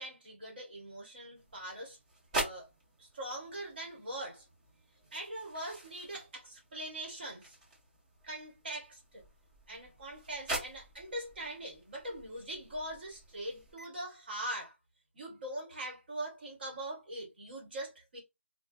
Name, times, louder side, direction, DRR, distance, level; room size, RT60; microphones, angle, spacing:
voice 1, 0.0-2.0 2.3-2.7 3.0-4.5 5.1-7.6 8.2-9.3 9.7-14.8 15.1-18.2, right 1 dB, 50° right, 1.3 m, -42 dB
sound 1, 1.3-13.8, right 1 dB, 30° right, 1.3 m, -44 dB
3.1 x 2.2 x 2.5 m
hypercardioid pair, 170°, 7 cm